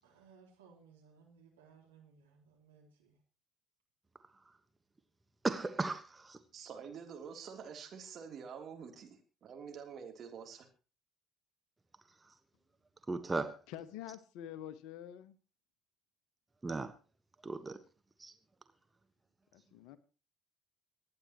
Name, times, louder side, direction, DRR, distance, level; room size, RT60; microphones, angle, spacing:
voice 1, 0.0-3.2, right 6 dB, 80° right, 3.5 m, -62 dB
voice 2, 5.4-6.4 13.1-13.6 16.6-16.9 17.4-17.8 18.2-18.3, right 3 dB, 20° right, 1.3 m, -36 dB
voice 3, 6.5-10.7, right 6 dB, 50° right, 3.2 m, -47 dB
voice 4, 13.7-15.3 19.5-20.0, left 11 dB, 65° left, 1.1 m, -47 dB
25.0 x 9.8 x 3.0 m
figure-of-eight pair, 55°, 0 cm